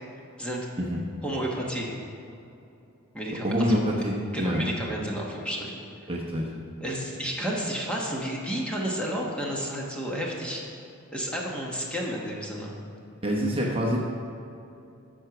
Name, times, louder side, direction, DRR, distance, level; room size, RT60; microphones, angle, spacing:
voice 1, 1.2-1.9 3.1-3.8 4.3-5.8 6.8-10.6 11.1-12.7, equal, 5° left, -3 dB, 1.2 m, -31 dB
voice 2, 3.4-4.7 6.1-6.5 13.2-14.0, equal, 25° right, -2 dB, 0.9 m, -26 dB
13.0 x 4.5 x 6.0 m, 2.7 s
head